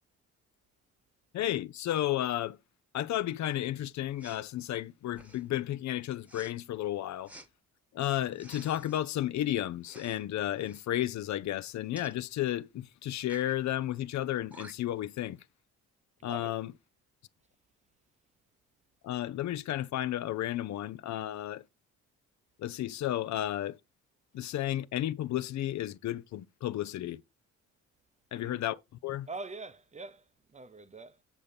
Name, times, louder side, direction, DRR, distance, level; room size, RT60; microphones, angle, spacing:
voice 1, 1.3-2.6 2.9-7.3 7.9-15.4 16.2-16.7 19.0-21.6 22.6-23.8 24.3-27.2 28.3-29.3, left 13 dB, 65° left, 0.6 m, -33 dB
Respiratory sounds, 4.2-4.5 5.1-5.5 6.3-6.5 7.3-7.5 8.3-9.0 9.8-10.2 10.5-10.8 12.0-12.1 13.2-13.6 14.2-14.3 14.5-15.0, right 1 dB, 5° right, 1.1 m, -51 dB
voice 2, 16.2-16.5 28.3-28.7 29.3-31.2, right 3 dB, 25° right, 0.7 m, -44 dB
7.3 x 4.1 x 5.1 m
cardioid pair, 90°, 30 cm